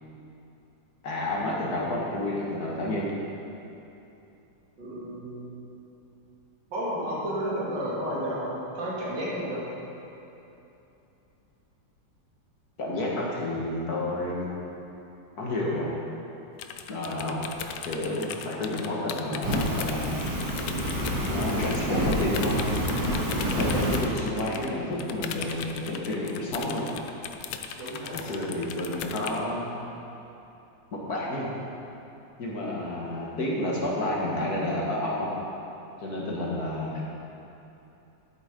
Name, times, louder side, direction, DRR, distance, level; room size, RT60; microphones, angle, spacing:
voice 1, 1.0-3.1 12.8-14.5 15.4-15.9 16.9-17.4 17.9-20.2 21.2-22.6 23.4-26.8 28.1-29.6 30.9-31.5 32.4-35.3 36.0-37.0, left 1 dB, 55° left, -4 dB, 2.0 m, -30 dB
voice 2, 4.8-5.5 6.7-9.6 27.8-28.3, equal, 70° right, -7 dB, 3.2 m, -32 dB
sound 1, 16.6-21.9 22.1-29.4, left 8 dB, 80° left, 1.4 m, -38 dB
Fire, 19.4-24.0, equal, 85° right, 3.4 m, -28 dB
11.5 x 8.1 x 5.2 m, 2.9 s
omnidirectional pair, 2.0 m